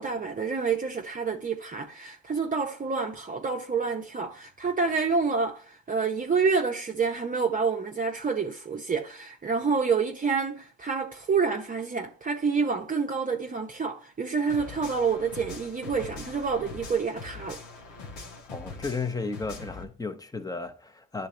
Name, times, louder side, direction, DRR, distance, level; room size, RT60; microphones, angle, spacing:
voice 1, 0.0-17.6, right 5 dB, 25° right, 0.7 m, -28 dB
sound 1, 14.5-19.8, left 4 dB, 85° left, 1.5 m, -42 dB
voice 2, 18.5-21.3, left 4 dB, 10° left, 0.8 m, -34 dB
10.0 x 3.8 x 3.3 m
cardioid pair, 90°, 30 cm